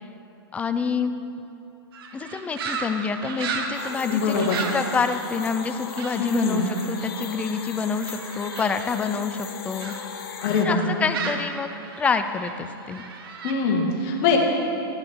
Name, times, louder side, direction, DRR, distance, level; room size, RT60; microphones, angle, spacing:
voice 1, 0.5-1.1 2.1-9.9 10.6-11.7 12.0-13.0, left 5 dB, 10° left, 9 dB, 0.3 m, -27 dB
sound 1, 1.9-10.0 10.4-13.5, right 5 dB, 65° right, 1.1 m, -36 dB
sound 2, 3.7-10.6, left 7 dB, 65° left, 0.8 m, -38 dB
voice 2, 4.1-4.6 6.2-6.7 10.4-10.9 13.4-14.4, left 4 dB, 45° left, 0 dB, 1.6 m, -23 dB
11.0 x 9.0 x 3.5 m, 2.8 s
hypercardioid pair, 135°, 13 cm